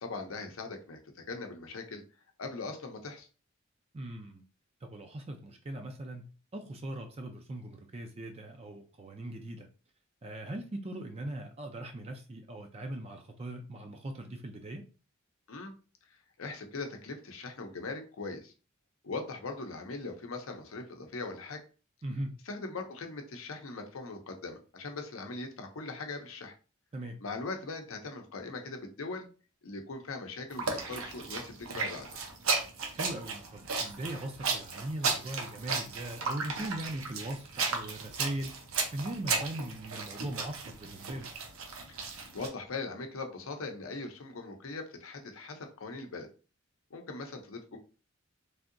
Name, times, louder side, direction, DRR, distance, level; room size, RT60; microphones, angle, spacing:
voice 1, 0.0-2.0 2.4-3.3 15.5-15.7 16.4-18.5 19.0-21.6 22.5-26.5 27.2-29.3 29.6-32.2 41.9-42.1 42.3-46.3 46.9-47.8, left 3 dB, 75° left, 5 dB, 0.6 m, -40 dB
voice 2, 3.9-4.4 4.8-9.7 10.2-14.8 22.0-22.3 26.9-27.2 32.9-38.5 38.9-41.3, right 1 dB, 30° right, 4 dB, 0.4 m, -40 dB
sound 1, 30.5-42.5, right 4 dB, 80° right, 0.7 m, -35 dB
3.4 x 2.7 x 2.5 m, 0.35 s
head